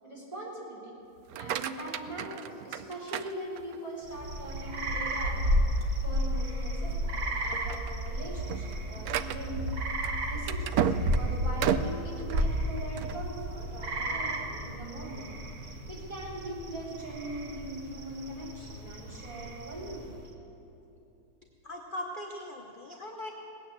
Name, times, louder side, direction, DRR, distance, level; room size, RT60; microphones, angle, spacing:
voice 1, 0.0-0.9 1.3-5.4 6.0-9.7 10.2-15.4 15.7-20.1, right 1 dB, 15° right, -6 dB, 4.1 m, -41 dB
sound 1, 1.2-4.0 4.5-4.9 5.4-5.5 5.9-6.1 6.8-7.0 7.4-13.2, right 9 dB, 75° right, 0.8 m, -34 dB
sound 2, 4.0-20.3, equal, 50° right, 1.6 m, -33 dB
voice 2, 21.6-23.3, left 1 dB, 45° left, 1 dB, 0.7 m, -39 dB
19.0 x 9.3 x 7.4 m, 2.9 s
omnidirectional pair, 2.1 m